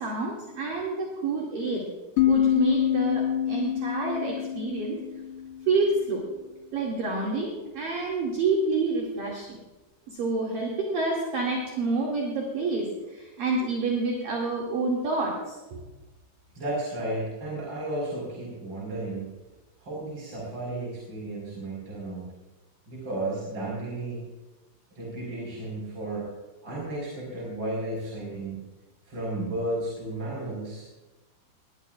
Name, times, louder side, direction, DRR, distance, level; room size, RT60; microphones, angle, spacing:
voice 1, 0.0-1.9 2.2-5.0 5.7-6.2 6.7-9.6 10.1-12.9 13.1-15.4 15.7-15.8, right 3 dB, 50° right, -3 dB, 3.6 m, -28 dB
sound 1, 2.2-5.8, left 10 dB, 90° left, 2.4 m, -25 dB
voice 2, 16.5-19.3 19.8-22.3 22.9-24.2 24.9-26.3 26.6-28.6 29.0-30.9, right 1 dB, 25° right, -5 dB, 5.0 m, -33 dB
21.0 x 20.5 x 2.5 m, 1.1 s
omnidirectional pair, 5.7 m